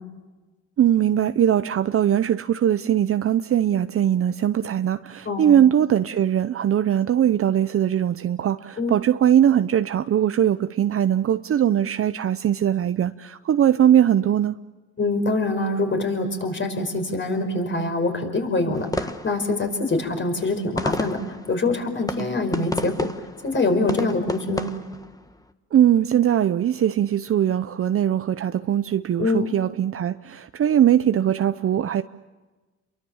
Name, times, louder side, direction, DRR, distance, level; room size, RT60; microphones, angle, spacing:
voice 1, 0.8-14.6 25.7-32.0, right 10 dB, 50° right, 0.7 m, -20 dB
voice 2, 5.2-5.6 8.8-9.0 15.0-21.2 21.5-22.9 23.4-24.7 29.2-29.5, left 2 dB, 40° left, 5.1 m, -24 dB
sound 1, 18.7-25.5, left 1 dB, 10° left, 1.5 m, -32 dB
29.0 x 23.0 x 7.2 m
cardioid pair, 90°, 30 cm